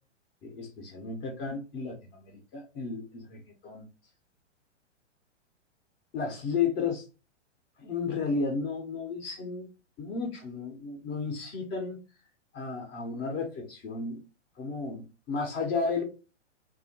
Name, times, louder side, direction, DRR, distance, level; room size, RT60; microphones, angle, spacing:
voice 1, 0.4-3.9 6.1-7.0 7.8-9.7 10.0-12.0 12.5-14.2 14.6-16.0, left 4 dB, 15° left, 2 dB, 0.3 m, -33 dB
2.7 x 2.1 x 2.6 m, 0.31 s
hypercardioid pair, 115°, 36 cm